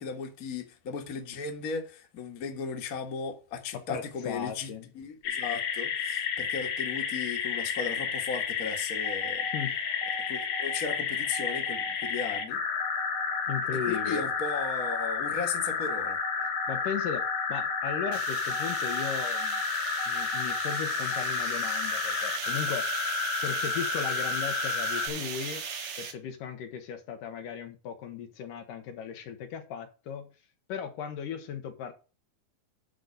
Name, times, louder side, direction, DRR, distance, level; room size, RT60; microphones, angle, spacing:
voice 1, 0.0-9.5 10.3-12.6 13.9-16.2, left 5 dB, 40° left, 1.4 m, -36 dB
voice 2, 3.7-4.9 9.5-9.8 13.5-14.3 16.7-19.6 20.1-22.9 23.4-25.6 26.0-30.3 30.7-31.9, left 8 dB, 80° left, 2.8 m, -37 dB
sound 1, 5.2-25.1, left 6 dB, 65° left, 2.3 m, -31 dB
sound 2, 9.0-21.3, right 4 dB, 50° right, 2.0 m, -44 dB
sound 3, 18.1-26.1, right 6 dB, 85° right, 3.5 m, -38 dB
10.5 x 3.9 x 6.6 m
omnidirectional pair, 3.8 m